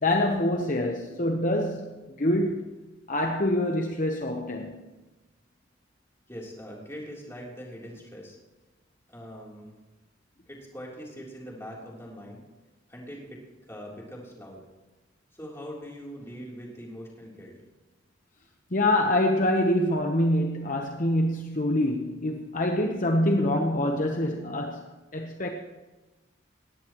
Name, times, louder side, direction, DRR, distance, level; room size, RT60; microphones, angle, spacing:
voice 1, 0.0-2.7 3.1-4.8 18.7-25.5, left 1 dB, 45° left, 2 dB, 1.0 m, -25 dB
voice 2, 6.3-8.4 9.1-9.8 10.5-12.4 12.9-13.4 13.7-14.6 15.3-17.6, equal, 15° left, -3 dB, 3.5 m, -42 dB
19.0 x 16.5 x 3.1 m, 1.2 s
head